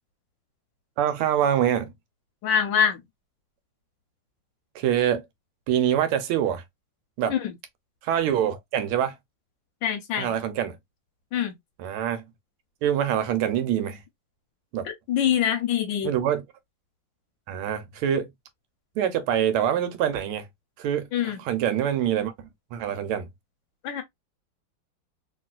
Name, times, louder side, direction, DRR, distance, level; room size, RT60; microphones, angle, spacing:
voice 1, 1.0-1.9 4.7-5.2 5.7-6.6 7.2-7.3 8.0-9.2 10.2-10.8 11.8-12.2 12.8-14.0 14.7-14.9 16.0-16.4 17.5-18.3 19.0-20.5 20.8-23.3, right 10 dB, 85° right, 1.5 m, -25 dB
voice 2, 2.4-3.0 7.3-7.5 9.8-10.3 11.3-11.6 14.8-16.1 21.1-21.4 23.8-24.0, left 9 dB, 70° left, 1.2 m, -24 dB
3.0 x 2.9 x 2.3 m
omnidirectional pair, 2.4 m